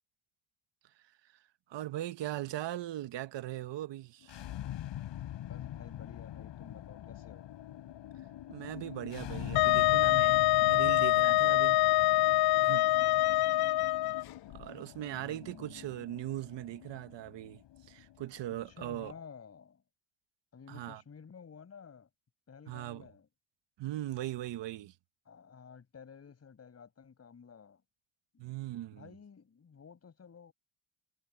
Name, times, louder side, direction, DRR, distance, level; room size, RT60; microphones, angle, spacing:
voice 1, 1.7-4.4 8.5-11.8 12.6-12.9 14.5-19.1 20.7-21.0 22.7-23.1 23.8-24.9 28.4-29.1, right 14 dB, 75° right, 1.1 m, -39 dB
sound 1, 4.2-19.2, left 12 dB, 85° left, 5.0 m, -44 dB
voice 2, 5.3-7.5 13.0-13.5 15.1-16.1 18.2-19.8 20.5-22.1 22.5-23.3 25.3-27.8 28.3-28.5 28.9-30.5, left 6 dB, 35° left, 6.0 m, -53 dB
Wind instrument woodwind instrument, 9.6-14.2, left 16 dB, 60° left, 0.5 m, -25 dB
cardioid pair, 150°, 43 cm